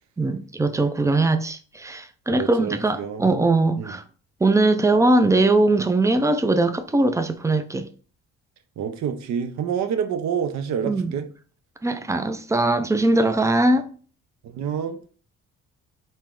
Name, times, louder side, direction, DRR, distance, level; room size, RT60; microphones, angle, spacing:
voice 1, 0.2-4.0 4.4-7.9 10.9-11.2 11.8-13.9, right 2 dB, 10° right, 0.3 m, -21 dB
voice 2, 2.3-3.5 3.8-4.0 8.8-11.2 14.4-15.0, right 7 dB, 65° right, 0.6 m, -28 dB
4.3 x 2.0 x 3.6 m
cardioid pair, 90°, 30 cm